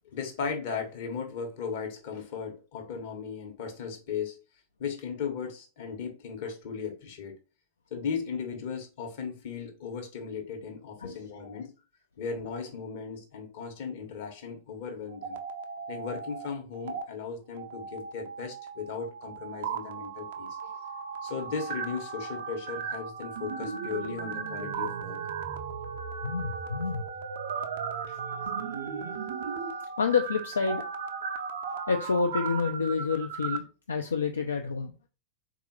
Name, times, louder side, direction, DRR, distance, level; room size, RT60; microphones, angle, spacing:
voice 1, 0.0-4.4 4.8-7.3 7.9-11.7 12.2-15.4 15.9-20.6 21.2-25.2 28.1-28.2 28.5-28.6, left 6 dB, 50° left, 1.0 m, -36 dB
sound 1, 15.1-16.5 16.7-17.0 17.6-33.6, right 6 dB, 55° right, 0.4 m, -36 dB
voice 2, 26.2-27.1 28.0-28.4 28.8-29.2 30.0-30.8 31.7-34.9, left 5 dB, 70° left, 0.3 m, -29 dB
3.6 x 2.4 x 2.9 m
figure-of-eight pair, 90°, 0 cm